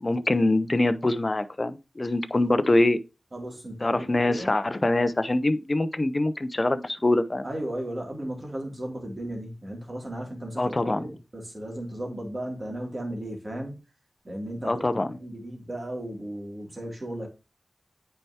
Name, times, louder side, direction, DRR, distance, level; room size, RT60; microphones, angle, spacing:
voice 1, 0.0-3.0 3.8-7.5 10.6-11.1 14.6-15.2, left 2 dB, 35° left, 0.6 m, -24 dB
voice 2, 3.3-4.5 7.4-13.7 14.2-14.7 15.1-17.3, right 1 dB, 40° right, 2.7 m, -35 dB
8.9 x 4.6 x 2.8 m
cardioid pair, 50°, 0 cm